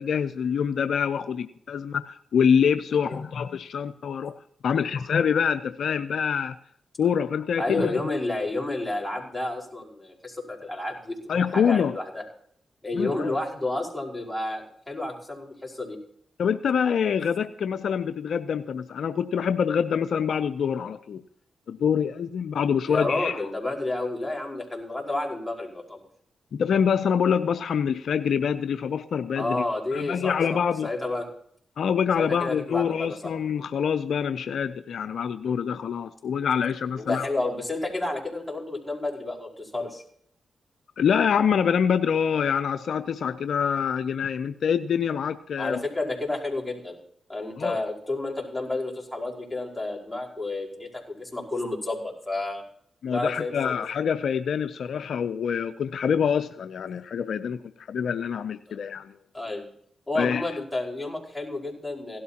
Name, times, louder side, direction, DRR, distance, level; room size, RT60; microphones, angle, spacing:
voice 1, 0.0-4.3 4.6-6.5 7.0-7.9 11.3-11.9 12.9-13.3 16.4-21.2 21.7-23.4 26.5-29.6 29.9-30.9 31.8-37.3 41.0-45.8 47.6-47.8 53.0-59.1 60.2-60.4, left 7 dB, 75° left, 11 dB, 0.5 m, -25 dB
voice 2, 7.6-12.2 12.8-16.0 22.9-26.0 29.4-30.6 30.8-31.3 32.2-33.3 37.0-40.0 45.6-47.0 47.3-52.6 53.1-53.8 58.7-58.8 59.3-59.7 60.1-62.2, left 2 dB, 15° left, -1 dB, 4.9 m, -30 dB
17.0 x 12.0 x 2.9 m, 0.65 s
supercardioid pair, 45°, 0 cm